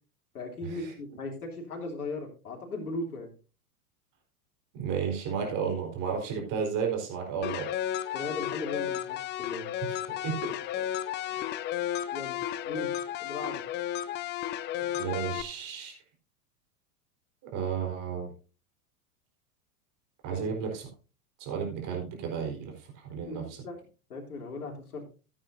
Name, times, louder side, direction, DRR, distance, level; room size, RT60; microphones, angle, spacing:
voice 1, 0.3-3.3 8.1-9.6 12.1-12.4 12.6-12.9 13.2-13.6 20.3-20.5 23.2-23.8 24.1-25.1, left 2 dB, 85° left, 0 dB, 3.2 m, -37 dB
voice 2, 4.7-7.7 9.8-10.4 11.3-11.5 14.9-16.0 17.5-18.3 20.2-20.9 21.4-23.6, right 6 dB, 45° right, 1 dB, 4.3 m, -33 dB
sound 1, 7.4-15.4, left 11 dB, 25° left, 0.5 m, -33 dB
15.0 x 8.9 x 2.6 m, 0.35 s
hypercardioid pair, 100°, 44 cm